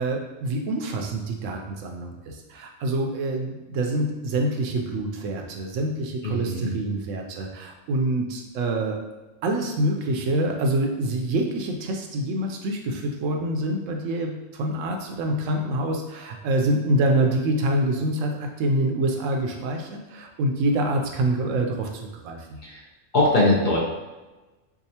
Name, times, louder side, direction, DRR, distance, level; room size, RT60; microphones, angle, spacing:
voice 1, 0.0-9.0 9.4-22.5, right 1 dB, 80° right, 3 dB, 0.9 m, -26 dB
voice 2, 6.2-6.7 22.6-22.8 23.1-23.8, left 2 dB, 45° left, -4 dB, 0.7 m, -21 dB
4.7 x 2.4 x 2.8 m, 1.1 s
omnidirectional pair, 1.3 m